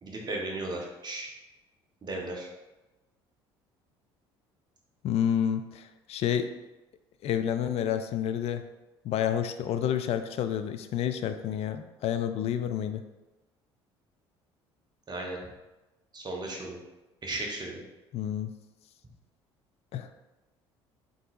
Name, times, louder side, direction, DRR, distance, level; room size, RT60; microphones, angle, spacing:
voice 1, 0.0-1.3 2.0-2.5 15.1-15.4 16.1-16.8 17.2-17.8, right 2 dB, 30° right, -1 dB, 1.0 m, -35 dB
voice 2, 5.0-6.5 7.2-8.6 9.0-13.0 18.1-18.5 19.9-20.1, left 9 dB, 50° left, 9 dB, 0.4 m, -29 dB
3.8 x 3.7 x 2.5 m, 1.1 s
hypercardioid pair, 60°, 13 cm